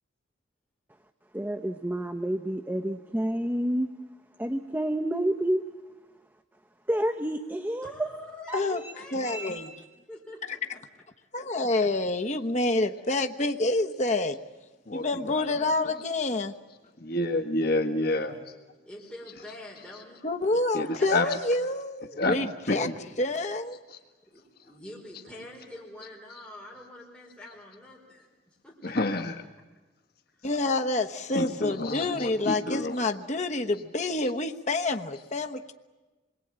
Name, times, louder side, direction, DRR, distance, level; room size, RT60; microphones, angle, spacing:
voice 1, 1.3-3.9 4.4-5.6 6.9-8.1 8.5-8.9 9.2-9.7, right 1 dB, 10° right, 6 dB, 0.8 m, -29 dB
voice 2, 7.8-9.4 10.1-10.4 18.8-20.2 21.2-21.3 23.0-23.2 24.3-28.9 31.1-31.2, left 1 dB, 5° left, -4 dB, 5.0 m, -45 dB
voice 3, 9.1-9.7 11.3-14.4 14.9-16.5 20.2-22.9 23.2-23.8 30.4-35.7, left 2 dB, 40° left, 4 dB, 1.2 m, -28 dB
voice 4, 14.9-15.4 15.8-15.9 17.0-18.4 20.7-21.3 22.2-22.4 22.7-23.0 23.9-24.0 28.8-29.4 31.3-33.0, left 2 dB, 55° left, 5 dB, 1.6 m, -28 dB
26.5 x 22.0 x 8.9 m, 1.2 s
head